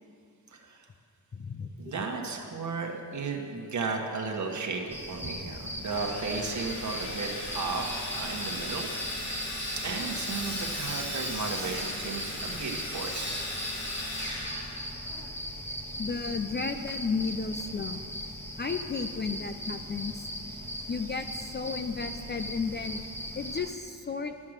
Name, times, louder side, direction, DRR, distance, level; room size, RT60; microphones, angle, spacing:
voice 1, 0.5-0.9 1.8-7.9 8.1-8.9 9.8-13.5, right 4 dB, 50° right, 2 dB, 1.3 m, -34 dB
voice 2, 1.3-1.7 16.0-18.0 18.6-20.3 20.9-23.0 23.4-24.3, left 5 dB, 30° left, 7 dB, 0.4 m, -33 dB
sound 1, 4.9-23.8, equal, 5° left, 0.9 m, -39 dB
Sawing, 5.8-15.3, left 1 dB, 75° left, 3.1 m, -37 dB
12.5 x 7.5 x 6.5 m, 2.3 s
wide cardioid pair, 175°, 36 cm